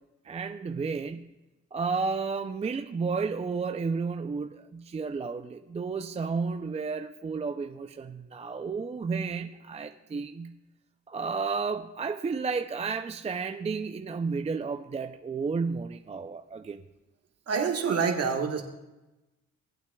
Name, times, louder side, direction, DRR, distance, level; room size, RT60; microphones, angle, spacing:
voice 1, 0.2-1.3 1.7-10.6 11.1-16.8, right 4 dB, 20° right, 7 dB, 0.4 m, -32 dB
voice 2, 17.5-18.6, right 6 dB, 55° right, 3 dB, 1.5 m, -26 dB
18.5 x 8.8 x 2.3 m, 1.0 s
cardioid pair, 90°, 30 cm